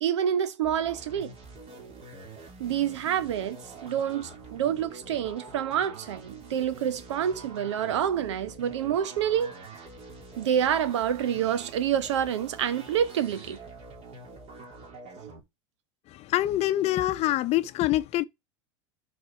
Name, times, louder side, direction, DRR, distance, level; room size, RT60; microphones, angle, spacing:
voice 1, 0.0-1.4 2.6-9.5 10.4-13.6, right 9 dB, 70° right, 0.9 m, -27 dB
sound 1, 0.6-15.4, right 3 dB, 40° right, 3.1 m, -46 dB
voice 2, 16.1-18.2, left 15 dB, 45° left, 0.8 m, -25 dB
11.5 x 4.3 x 4.5 m
hypercardioid pair, 80°, 16 cm